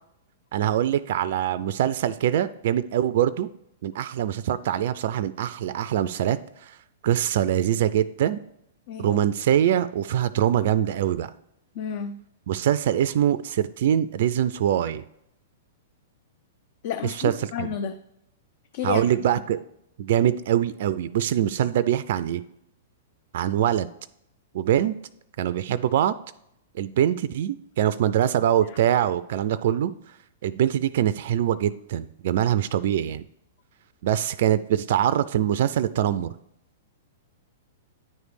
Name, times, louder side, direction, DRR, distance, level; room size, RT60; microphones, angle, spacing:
voice 1, 0.5-3.5 3.8-6.8 7.0-8.4 9.0-11.3 12.5-15.0 17.0-17.3 17.6-17.7 18.8-19.6 20.0-22.4 23.3-23.9 24.5-24.9 25.4-26.1 26.7-29.9 30.4-33.2 34.0-36.3, right 10 dB, 60° right, 15 dB, 0.3 m, -23 dB
voice 2, 8.9-9.2 11.7-12.2 16.8-18.0 18.7-19.0, left 8 dB, 55° left, 6 dB, 0.5 m, -30 dB
9.3 x 3.3 x 4.7 m, 0.76 s
hypercardioid pair, 115°, 0 cm